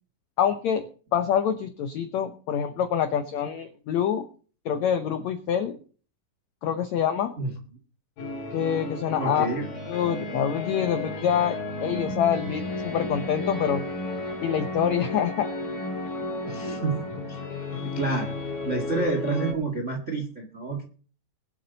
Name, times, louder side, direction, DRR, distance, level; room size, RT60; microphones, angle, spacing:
voice 1, 0.4-0.8 1.1-4.3 4.6-5.8 6.6-7.3 8.5-9.5 9.9-13.8 14.4-15.5, left 8 dB, 85° left, 10 dB, 1.6 m, -26 dB
sound 1, 8.2-19.5, left 2 dB, 70° left, 5.1 m, -33 dB
voice 2, 9.2-9.6 16.4-17.0 17.3-17.4 17.8-18.3 18.6-20.8, right 3 dB, 45° right, 4 dB, 0.9 m, -29 dB
22.0 x 8.2 x 4.0 m, 0.41 s
omnidirectional pair, 4.4 m